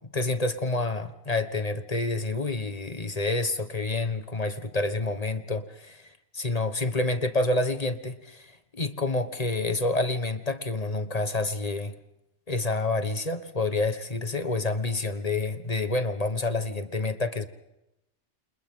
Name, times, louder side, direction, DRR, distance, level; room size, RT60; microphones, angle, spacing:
voice 1, 0.1-11.9 12.5-17.5, left 2 dB, 35° left, 10 dB, 1.5 m, -28 dB
29.5 x 27.5 x 3.8 m, 0.88 s
omnidirectional pair, 1.2 m